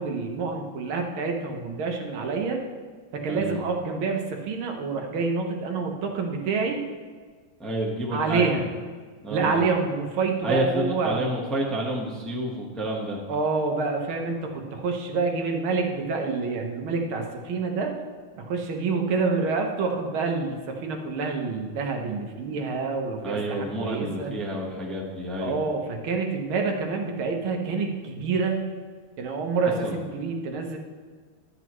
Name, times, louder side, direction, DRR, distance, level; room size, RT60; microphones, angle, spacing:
voice 1, 0.0-2.6 3.1-6.8 8.1-8.6 9.3-11.2 13.3-17.9 18.4-24.3 25.4-28.7 29.2-30.8, right 4 dB, 85° right, 2 dB, 1.8 m, -27 dB
voice 2, 3.3-3.6 7.6-8.6 9.2-9.6 10.4-13.2 23.2-25.6 29.8-29.9, right 1 dB, ahead, -3 dB, 0.9 m, -29 dB
12.0 x 7.9 x 3.1 m, 1.6 s
omnidirectional pair, 2.2 m